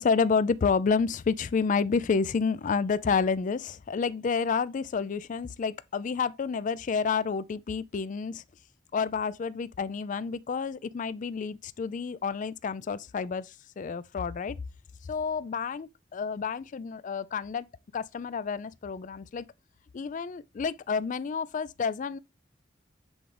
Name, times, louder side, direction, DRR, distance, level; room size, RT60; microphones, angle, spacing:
voice 1, 0.0-8.4 8.9-14.6 15.1-17.7 17.9-19.4 19.9-22.2, left 5 dB, 45° left, 0.4 m, -29 dB
7.9 x 3.8 x 3.2 m
head